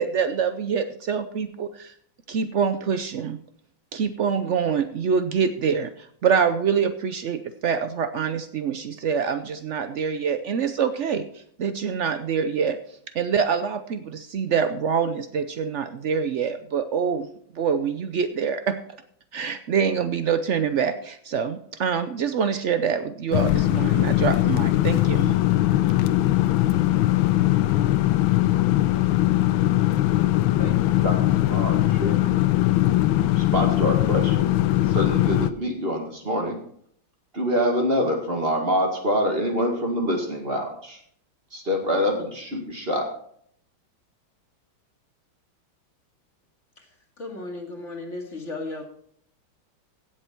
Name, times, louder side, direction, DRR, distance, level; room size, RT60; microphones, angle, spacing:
voice 1, 0.0-1.9 2.3-3.4 3.9-12.8 13.1-17.3 17.5-18.8 19.3-25.3, right 6 dB, 90° right, 10 dB, 0.6 m, -25 dB
sound 1, 23.3-35.5, left 15 dB, 85° left, 1.4 m, -20 dB
voice 2, 30.6-31.2 31.5-32.4 33.3-34.5 34.9-36.6 37.3-41.0 41.5-43.1, equal, 30° right, 2 dB, 2.3 m, -26 dB
voice 3, 46.8-48.8, left 2 dB, 35° left, 1 dB, 2.6 m, -35 dB
16.5 x 7.7 x 4.5 m, 0.65 s
omnidirectional pair, 2.1 m